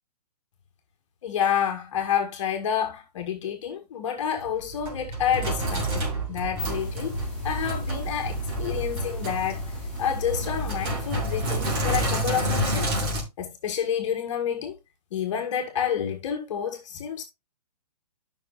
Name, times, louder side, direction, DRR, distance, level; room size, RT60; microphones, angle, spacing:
voice 1, 1.2-7.1 7.4-12.9 13.4-14.8 15.1-17.2, left 8 dB, 45° left, 1.7 m, -29 dB
Sink (filling or washing), 4.4-13.2, right 1 dB, 35° right, 3.5 m, -29 dB
sound 1, 6.3-12.5, left 1 dB, 5° left, 6.1 m, -35 dB
12.0 x 6.0 x 2.5 m
hypercardioid pair, 155°, 21 cm